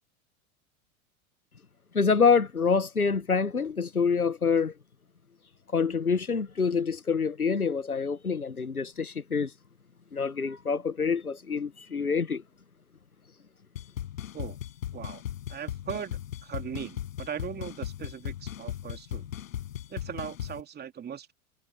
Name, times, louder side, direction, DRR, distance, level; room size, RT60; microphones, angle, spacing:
voice 1, 1.9-4.7 5.7-9.5 10.1-12.4, left 5 dB, 90° left, 1.1 m, -26 dB
sound 1, 13.8-20.6, left 11 dB, 65° left, 6.5 m, -37 dB
voice 2, 15.5-19.3 19.9-21.3, right 8 dB, 20° right, 3.1 m, -39 dB
figure-of-eight pair, 90°, 43 cm